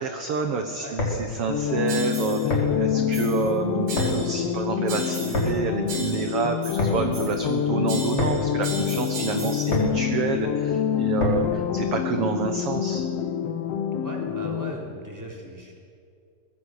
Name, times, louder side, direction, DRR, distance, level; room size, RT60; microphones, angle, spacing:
voice 1, 0.0-13.0, right 5 dB, 60° right, 6 dB, 1.8 m, -28 dB
sound 1, 0.8-11.7, left 2 dB, 40° left, 5.3 m, -31 dB
sound 2, 1.5-14.7, left 9 dB, 65° left, 1.7 m, -27 dB
sound 3, 1.9-2.5 3.1-3.5 3.9-4.5 4.9-5.5 5.9-7.5 7.9-9.8, right 3 dB, 80° right, 5.1 m, -37 dB
voice 2, 14.0-15.8, equal, 5° right, -1 dB, 3.4 m, -38 dB
23.5 x 19.0 x 6.6 m, 2.4 s
omnidirectional pair, 3.7 m